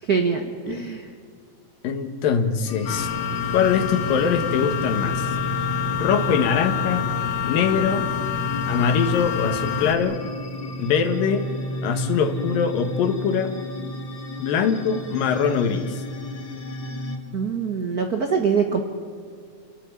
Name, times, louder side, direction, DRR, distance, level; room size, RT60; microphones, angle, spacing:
voice 1, 0.0-1.1 17.3-18.8, right 6 dB, 65° right, 4 dB, 0.9 m, -24 dB
voice 2, 1.8-3.1 3.5-5.3 5.9-7.0 7.4-8.1 8.7-10.2 10.8-11.5 11.8-13.6 14.4-16.0, left 6 dB, 85° left, 6 dB, 3.3 m, -23 dB
sound 1, 2.7-17.2, equal, 40° left, 2.2 m, -33 dB
sound 2, 2.9-10.0, left 8 dB, 70° left, 2.7 m, -27 dB
29.5 x 14.0 x 9.6 m, 2.1 s
omnidirectional pair, 3.9 m